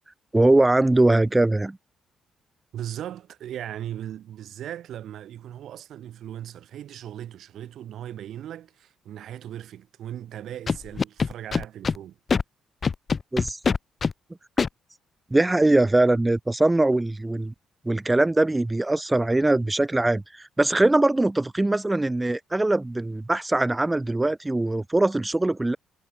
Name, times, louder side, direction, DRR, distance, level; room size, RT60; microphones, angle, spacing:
voice 1, 0.3-1.8 13.3-13.6 15.3-17.5 17.9-25.8, right 2 dB, 15° right, 0.3 m, -21 dB
voice 2, 2.7-12.2, right 11 dB, 70° right, 7.2 m, -38 dB
Scratching (performance technique), 10.7-12.0 12.3-12.4 12.8-14.1 14.6-14.7, left 5 dB, 40° left, 0.6 m, -23 dB
cardioid pair, 90°, 0 cm